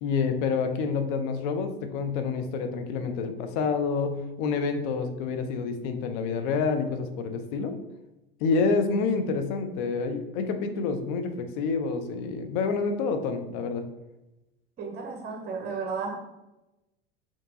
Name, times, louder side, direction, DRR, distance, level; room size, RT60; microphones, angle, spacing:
voice 1, 0.0-7.7 8.4-13.9, left 4 dB, 55° left, 7 dB, 0.6 m, -28 dB
voice 2, 14.8-16.3, right 4 dB, 30° right, 1 dB, 0.8 m, -33 dB
4.4 x 2.9 x 2.6 m, 0.97 s
hypercardioid pair, 75°, 30 cm